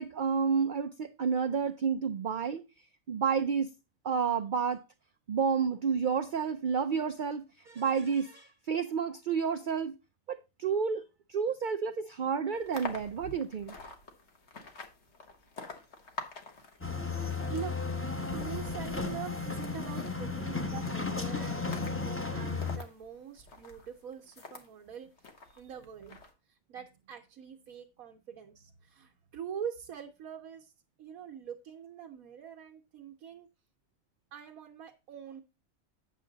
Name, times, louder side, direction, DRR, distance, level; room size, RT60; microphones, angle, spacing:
voice 1, 0.0-2.6 3.1-3.7 4.0-4.8 5.3-9.9 10.3-11.0 11.3-13.7, right 6 dB, 65° right, 7 dB, 0.4 m, -30 dB
sound 1, 12.5-24.7 25.2-26.3, left 3 dB, 55° left, 1.6 m, -48 dB
sound 2, 16.8-22.8, left 4 dB, 10° left, 0.8 m, -34 dB
voice 2, 18.3-25.1 25.4-26.1 26.5-30.7 31.0-33.5 34.3-35.4, right 8 dB, 85° right, 1 dB, 1.3 m, -44 dB
8.8 x 6.6 x 3.9 m, 0.28 s
omnidirectional pair, 1.5 m